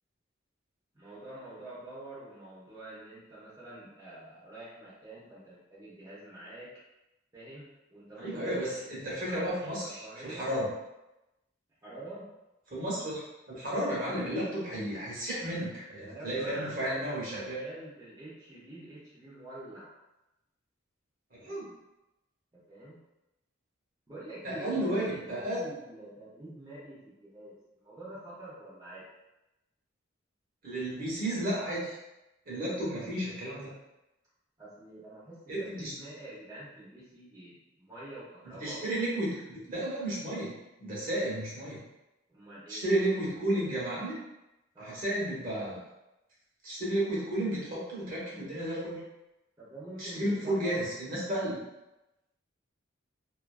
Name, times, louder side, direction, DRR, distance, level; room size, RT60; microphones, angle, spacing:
voice 1, 0.9-6.7 7.3-8.8 9.2-10.5 11.8-12.3 16.0-19.9 22.5-23.0 24.1-27.5 27.8-29.0 34.6-38.9 42.3-42.8 44.7-45.0 49.6-50.8, right 1 dB, 20° right, -10 dB, 0.6 m, -46 dB
voice 2, 8.2-10.7 12.7-17.6 21.3-21.7 24.4-25.6 30.6-31.9 32.5-33.7 35.5-35.9 38.4-41.8 42.7-44.1 44.8-45.8 46.6-49.0 50.0-51.6, right 1 dB, 45° right, -6 dB, 0.9 m, -33 dB
2.4 x 2.3 x 2.2 m, 0.94 s
head